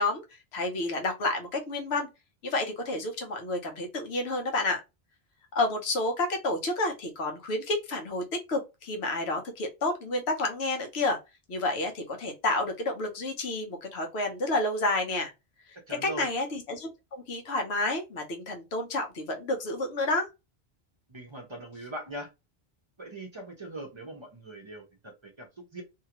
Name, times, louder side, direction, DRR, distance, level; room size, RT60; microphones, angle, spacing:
voice 1, 0.0-2.1 2.4-4.8 5.5-11.2 11.5-15.3 16.0-20.3, left 2 dB, 90° left, 1.1 m, -30 dB
voice 2, 15.9-16.3 21.1-22.3 23.0-25.8, right 1 dB, 35° right, 0.6 m, -41 dB
2.8 x 2.4 x 2.9 m
omnidirectional pair, 1.1 m